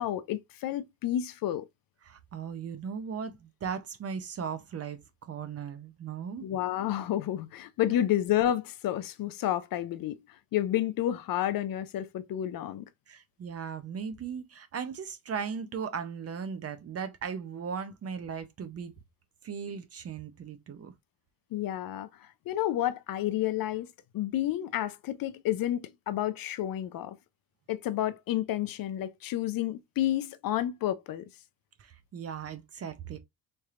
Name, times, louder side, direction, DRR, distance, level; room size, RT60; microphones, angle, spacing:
voice 1, 0.0-1.7 6.4-12.9 21.5-23.9 24.1-27.2 27.7-31.3, left 12 dB, 50° left, 0.5 m, -30 dB
voice 2, 2.0-6.5 13.1-18.9 19.4-20.9 31.8-33.2, right 6 dB, 35° right, 0.5 m, -37 dB
4.2 x 3.3 x 2.4 m
cardioid pair, 140°, 45 cm